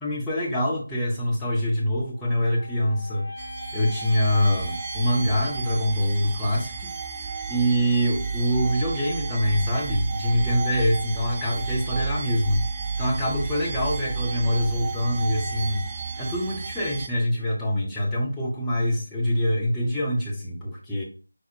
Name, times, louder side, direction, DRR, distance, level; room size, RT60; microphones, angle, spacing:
voice 1, 0.0-3.3 3.7-6.9 7.5-12.6 13.0-15.9 16.2-21.0, equal, 5° left, -6 dB, 0.8 m, -24 dB
sound 1, 2.1-6.4, left 2 dB, 65° left, 0.4 m, -41 dB
sound 2, 3.4-17.1, right 5 dB, 15° right, 0.3 m, -32 dB
5.0 x 2.1 x 4.4 m, 0.37 s
figure-of-eight pair, 165°, 0 cm